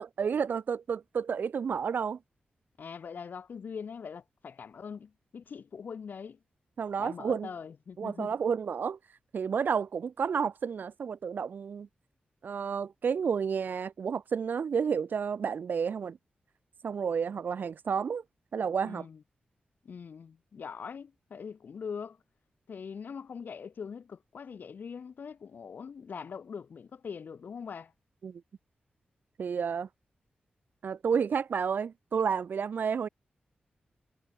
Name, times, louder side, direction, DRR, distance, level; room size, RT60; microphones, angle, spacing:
voice 1, 0.0-2.2 6.8-7.5 8.0-9.0 9.3-11.9 12.4-16.2 16.8-18.2 18.5-19.1 28.2-28.4 29.4-29.9 30.8-33.1, right 6 dB, 70° right, 0.9 m, -31 dB
voice 2, 2.8-6.4 7.0-8.3 18.8-19.2 19.8-22.2 22.7-27.9, left 6 dB, 70° left, 0.9 m, -42 dB
cardioid pair, 70°, 3 cm